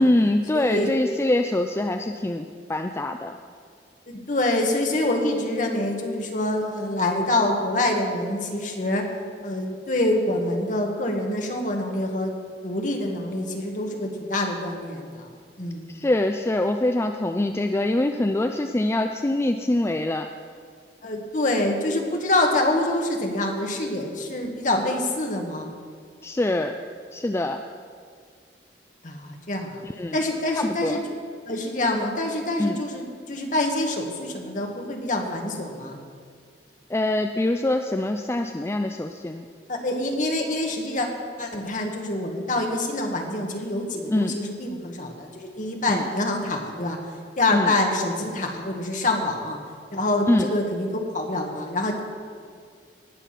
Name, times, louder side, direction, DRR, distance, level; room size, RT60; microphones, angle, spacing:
voice 1, 0.0-3.3 15.9-20.3 26.2-26.7 27.1-27.6 29.8-30.2 30.6-31.0 32.6-32.8 36.9-39.4 44.1-44.4 45.9-46.0 47.5-47.7 50.3-50.5, left 1 dB, 15° left, 6 dB, 0.4 m, -24 dB
voice 2, 0.5-0.9 4.1-9.0 9.4-12.3 12.6-15.3 15.6-15.9 21.0-25.7 29.0-29.8 30.1-31.0 31.5-36.0 39.7-41.1 41.4-47.0 47.4-49.6 49.9-52.0, left 1 dB, 45° left, 2 dB, 1.6 m, -26 dB
19.0 x 7.0 x 5.9 m, 2.1 s
head